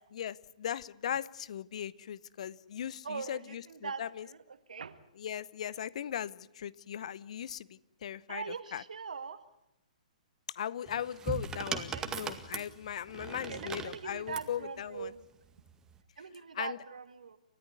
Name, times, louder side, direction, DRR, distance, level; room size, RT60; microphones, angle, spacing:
voice 1, 0.1-4.3 5.2-8.8 10.5-15.1 16.5-16.8, left 9 dB, 55° left, 21 dB, 0.9 m, -38 dB
voice 2, 3.0-4.4 4.7-5.0 8.3-9.4 11.9-12.1 13.5-15.2 16.2-17.4, right 5 dB, 70° right, 11 dB, 2.0 m, -41 dB
sound 1, 10.9-14.5 15.6-16.0, right 6 dB, 15° right, 2.0 m, -39 dB
30.0 x 14.5 x 9.6 m, 0.83 s
figure-of-eight pair, 125°, 4 cm